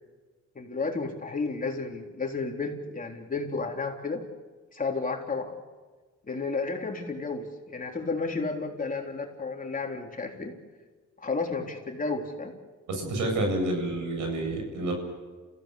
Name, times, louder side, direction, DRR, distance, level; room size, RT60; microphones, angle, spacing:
voice 1, 0.6-4.2 4.7-5.5 6.3-10.5 11.2-12.5, left 4 dB, 25° left, 2 dB, 3.7 m, -32 dB
voice 2, 12.9-14.9, right 1 dB, 80° right, 3 dB, 7.8 m, -29 dB
29.5 x 16.0 x 8.5 m, 1.3 s
cardioid pair, 90°, 30 cm